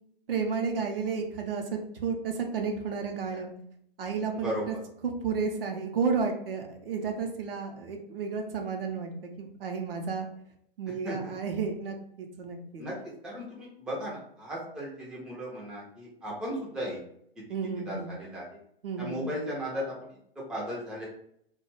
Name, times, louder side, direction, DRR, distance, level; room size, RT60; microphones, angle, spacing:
voice 1, 0.3-3.5 4.0-4.7 5.0-10.3 10.8-12.8 17.5-18.1 18.8-19.2, right 5 dB, 70° right, 3 dB, 0.6 m, -32 dB
voice 2, 4.3-4.6 11.0-11.3 12.8-12.9 13.2-17.0 17.9-18.4 19.0-20.2 20.5-21.1, equal, 5° right, -5 dB, 0.4 m, -36 dB
2.2 x 2.0 x 3.0 m, 0.71 s
figure-of-eight pair, 110°, 30 cm